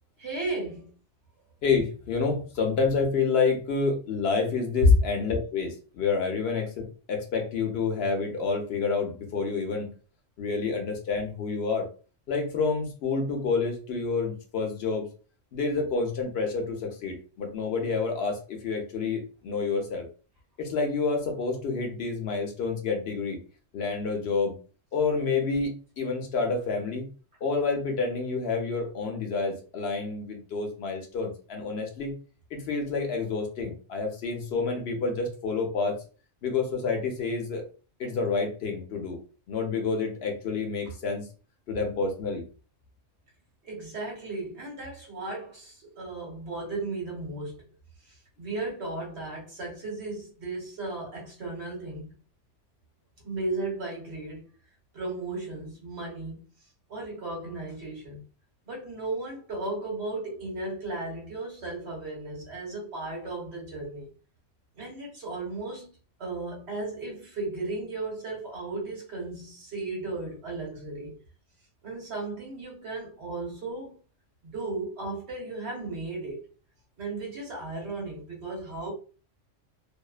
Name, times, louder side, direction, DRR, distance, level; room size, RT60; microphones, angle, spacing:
voice 1, 0.2-0.9 43.6-47.7 48.4-52.1 53.2-54.5 54.9-56.4 56.9-58.2 58.6-64.1 64.8-65.9 66.2-71.2 71.8-73.9 74.4-76.4 77.0-78.9, right 2 dB, 60° right, 1.3 m, -35 dB
voice 2, 1.6-9.9 10.4-11.9 12.3-15.1 15.5-20.1 20.6-23.4 23.7-24.6 24.9-27.1 27.4-32.1 32.5-36.0 36.4-37.6 38.0-39.2 39.5-41.3 41.7-42.4, left 4 dB, 65° left, 0.8 m, -28 dB
2.7 x 2.0 x 2.3 m
omnidirectional pair, 1.3 m